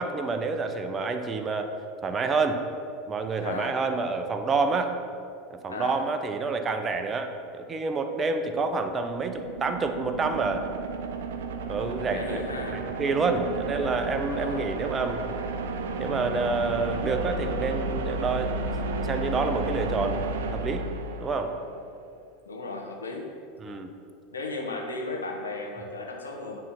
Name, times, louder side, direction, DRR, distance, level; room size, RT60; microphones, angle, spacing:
voice 1, 0.0-1.7 2.0-2.6 3.1-5.0 5.5-10.7 11.7-12.4 12.7-15.3 16.0-18.5 19.0-20.2 20.5-20.8 21.2-21.5 23.6-23.9, right 4 dB, 25° right, 6 dB, 0.7 m, -28 dB
voice 2, 3.4-3.8 5.7-6.0 11.8-12.8 14.3-14.6 22.5-23.3 24.3-26.6, left 2 dB, 85° left, 1 dB, 0.9 m, -35 dB
sound 1, 8.6-21.8, right 3 dB, 70° right, 0.5 m, -32 dB
8.9 x 3.3 x 5.8 m, 2.4 s
figure-of-eight pair, 80°, 0 cm